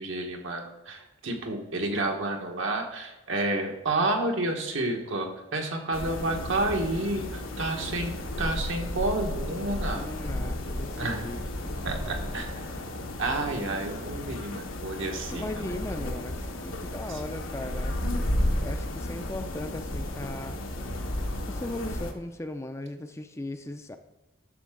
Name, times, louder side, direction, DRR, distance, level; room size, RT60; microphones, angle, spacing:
voice 1, 0.0-10.1 11.0-11.2 11.8-12.8 13.2-15.4, right 2 dB, 75° right, 2 dB, 1.5 m, -30 dB
sound 1, 5.9-22.1, left 1 dB, 85° left, 1.3 m, -33 dB
voice 2, 9.9-11.9 15.3-18.0 18.6-20.6 21.5-24.0, left 1 dB, 15° left, 7 dB, 0.4 m, -38 dB
11.0 x 6.7 x 3.8 m, 1.1 s
head